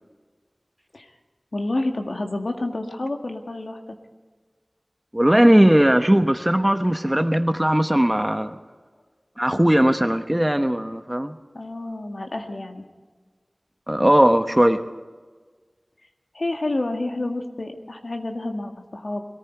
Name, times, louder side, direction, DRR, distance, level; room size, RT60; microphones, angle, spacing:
voice 1, 1.5-4.0 11.5-12.9 16.3-19.2, left 2 dB, 75° left, 3 dB, 1.8 m, -29 dB
voice 2, 5.1-8.5 9.4-11.4 13.9-14.8, right 1 dB, 15° right, 8 dB, 1.0 m, -18 dB
21.5 x 14.0 x 4.6 m, 1.4 s
wide cardioid pair, 55°, 0 cm